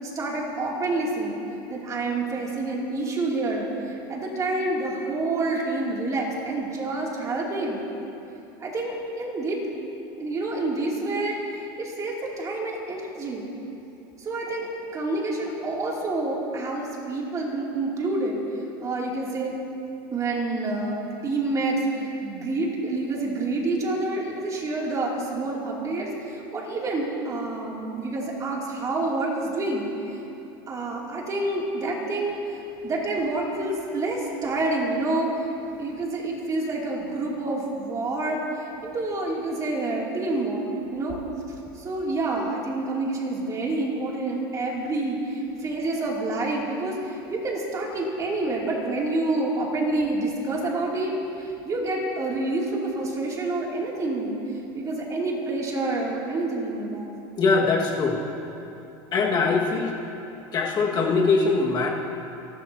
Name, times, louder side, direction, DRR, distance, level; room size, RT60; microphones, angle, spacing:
voice 1, 0.0-1.4 1.7-7.8 8.6-9.6 10.2-13.4 14.2-18.4 18.8-19.5 20.1-30.2 30.7-32.4 32.8-35.4 35.8-41.2 41.7-51.1 51.4-54.3 54.7-57.1, right 2 dB, 30° right, -3 dB, 2.8 m, -28 dB
voice 2, 57.4-58.2 59.1-59.9 60.5-61.9, left 4 dB, 35° left, -2 dB, 1.8 m, -22 dB
29.0 x 12.0 x 2.8 m, 2.9 s
supercardioid pair, 130°, 12 cm